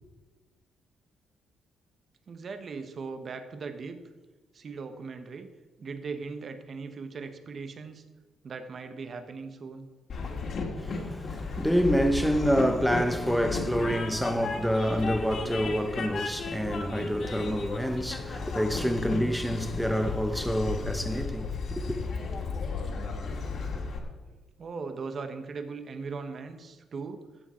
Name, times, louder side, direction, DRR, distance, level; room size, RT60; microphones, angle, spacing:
voice 1, 2.3-4.0 4.5-5.5 5.8-8.0 8.4-9.9 24.3-27.2, right 4 dB, 50° right, 1.2 m, -39 dB
Train, 10.1-24.0, left 4 dB, 60° left, 2.1 m, -34 dB
voice 2, 10.8-22.0, equal, ahead, 1.0 m, -27 dB
14.0 x 7.6 x 4.4 m
cardioid pair, 90°, 0 cm